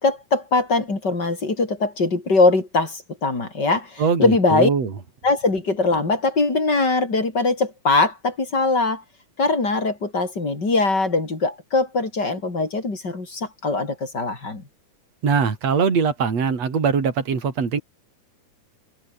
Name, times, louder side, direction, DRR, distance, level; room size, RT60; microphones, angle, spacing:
voice 1, 0.0-4.7 5.2-9.0 9.4-14.6, left 3 dB, 30° left, 5.2 m, -21 dB
voice 2, 4.0-4.9 15.2-17.8, right 6 dB, 55° right, 5.0 m, -21 dB
omnidirectional pair, 3.6 m